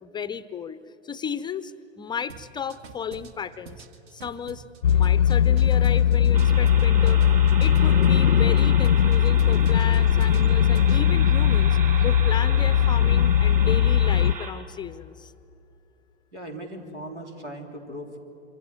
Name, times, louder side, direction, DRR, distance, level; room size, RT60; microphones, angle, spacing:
voice 1, 0.0-7.2 7.6-11.8 12.0-15.3, left 7 dB, 15° left, 14 dB, 0.5 m, -34 dB
sound 1, 2.3-8.2 8.6-11.0, right 5 dB, 50° right, 2.1 m, -46 dB
sound 2, 4.8-14.3, left 9 dB, 85° left, 0.6 m, -19 dB
sound 3, 6.3-14.5, right 6 dB, 25° right, 3.3 m, -37 dB
voice 2, 16.3-18.2, equal, 90° right, 4 dB, 3.6 m, -38 dB
25.5 x 25.5 x 7.3 m, 2.9 s
figure-of-eight pair, 95°, 34 cm